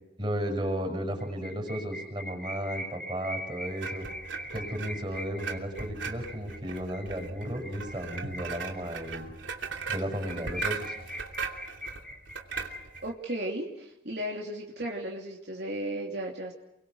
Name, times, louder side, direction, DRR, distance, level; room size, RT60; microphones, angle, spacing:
voice 1, 0.2-4.1 4.5-9.3 9.9-10.9, equal, 25° right, 3 dB, 6.2 m, -34 dB
sound 1, 1.2-9.1 9.5-9.6 9.9-10.0 10.2-13.3, left 1 dB, 5° left, 2.3 m, -42 dB
sound 2, 3.8-13.1, right 5 dB, 90° right, 3.0 m, -38 dB
voice 2, 13.0-16.5, right 1 dB, 65° right, -1 dB, 3.2 m, -35 dB
29.0 x 23.5 x 6.4 m, 0.89 s
head